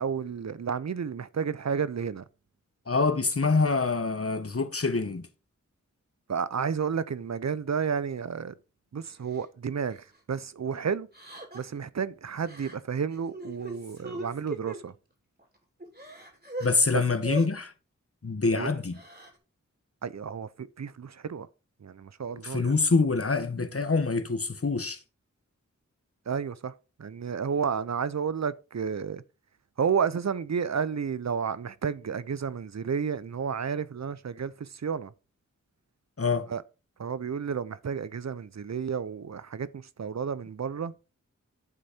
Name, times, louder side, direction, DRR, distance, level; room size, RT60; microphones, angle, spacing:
voice 1, 0.0-2.2 6.3-8.5 8.9-11.1 11.5-14.9 16.9-17.0 18.6-18.7 20.0-21.5 21.8-22.7 26.3-26.7 27.0-29.2 29.8-35.1 36.5-36.6 37.0-40.9, right 6 dB, 60° right, 0.7 m, -31 dB
voice 2, 2.9-5.3 16.6-17.7 18.2-19.0 22.4-25.0 36.2-36.5, left 4 dB, 50° left, 1.3 m, -25 dB
Crying sobbing, 9.3-9.4 9.9-10.1 11.1-11.8 12.4-12.7 13.1-14.8 15.4-15.5 15.8-16.7 17.2-17.5 18.8-19.3, right 1 dB, 30° right, 3.0 m, -39 dB
11.0 x 4.2 x 5.1 m
cardioid pair, 40°, 30 cm